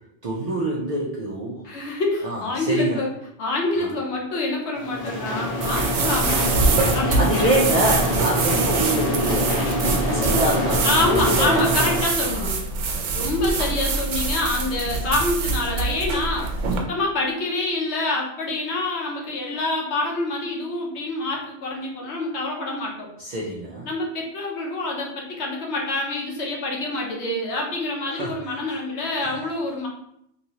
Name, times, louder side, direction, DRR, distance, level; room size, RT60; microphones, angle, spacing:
voice 1, 0.2-1.7 2.2-3.0 3.8-3.9 7.2-11.7 12.2-12.5 12.9-13.1 13.6-13.7 23.2-23.9 28.1-28.3 28.7-28.8 29.2-29.3, right 1 dB, 55° right, -4 dB, 0.4 m, -26 dB
voice 2, 1.6-3.1 3.4-7.2 10.8-12.6 13.1-23.1 23.8-29.9, left 2 dB, 65° left, -1 dB, 1.0 m, -26 dB
sound 1, 4.8-12.0, left 1 dB, 45° left, 0.5 m, -25 dB
sound 2, 5.6-16.8, right 4 dB, 80° right, 0.9 m, -25 dB
3.0 x 2.7 x 2.8 m, 0.76 s
omnidirectional pair, 1.2 m